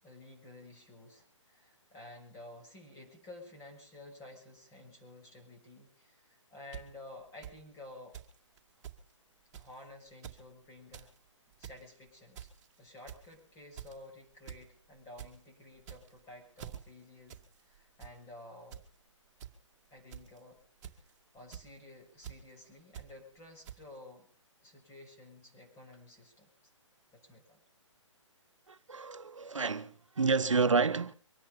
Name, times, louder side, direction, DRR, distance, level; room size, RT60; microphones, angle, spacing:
voice 1, 0.0-8.2 9.5-11.1 11.6-12.5 12.8-17.4 17.7-18.8 19.9-20.6 20.9-24.3 24.6-26.5 27.1-27.6, left 2 dB, 15° left, 6.6 m, -52 dB
sound 1, 6.7-6.8 7.4-7.5 8.1-8.3 8.6-8.7 8.8-9.0 9.5-9.7 10.1-10.4 10.8-11.1 11.5-11.8 12.4-12.7 13.1-13.3 13.8-14.0 14.5-14.6 14.9-15.3 15.8-16.2 16.6-16.8 17.3-17.4 17.7-18.1 18.7-18.8 19.4-19.5 20.1-20.4 20.8-21.1 21.5-21.7 22.2-22.4 22.9-23.1 23.7-23.8, right 10 dB, 30° right, 2.1 m, -45 dB
voice 2, 28.7-31.1, right 4 dB, 75° right, 0.9 m, -29 dB
24.5 x 10.5 x 5.5 m
figure-of-eight pair, 135°, 16 cm